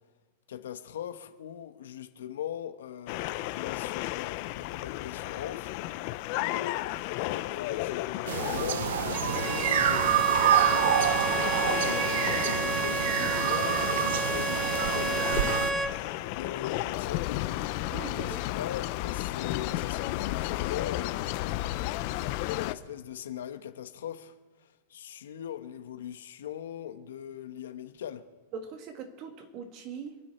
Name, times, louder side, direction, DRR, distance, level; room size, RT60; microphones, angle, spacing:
voice 1, 0.5-6.0 6.3-7.0 7.3-17.5 18.0-21.4 22.6-28.2, left 10 dB, 85° left, 1.0 m, -41 dB
sound 1, 3.1-22.7, left 17 dB, 50° left, 0.6 m, -33 dB
sound 2, 8.3-15.7, right 10 dB, 70° right, 0.6 m, -27 dB
Bowed string instrument, 9.1-16.0, right 1 dB, 10° right, 0.9 m, -32 dB
voice 2, 17.9-18.5 28.5-30.2, right 6 dB, 40° right, 1.9 m, -41 dB
25.0 x 9.6 x 4.3 m
supercardioid pair, 140°, 0 cm